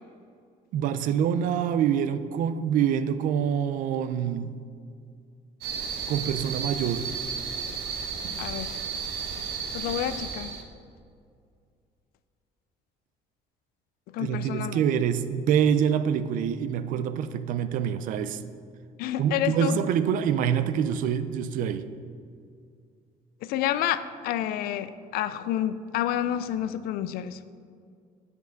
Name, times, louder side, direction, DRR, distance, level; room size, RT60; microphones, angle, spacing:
voice 1, 0.7-4.6 6.1-7.1 14.2-18.4 19.2-21.8, right 8 dB, 60° right, 0.5 m, -26 dB
sound 1, 5.6-10.6, right 6 dB, 80° right, 1.3 m, -33 dB
voice 2, 8.4-8.8 9.7-10.5 14.1-14.8 19.0-19.8 23.4-27.5, left 11 dB, 80° left, 0.5 m, -29 dB
9.4 x 5.4 x 6.3 m
cardioid pair, 180°, 15 cm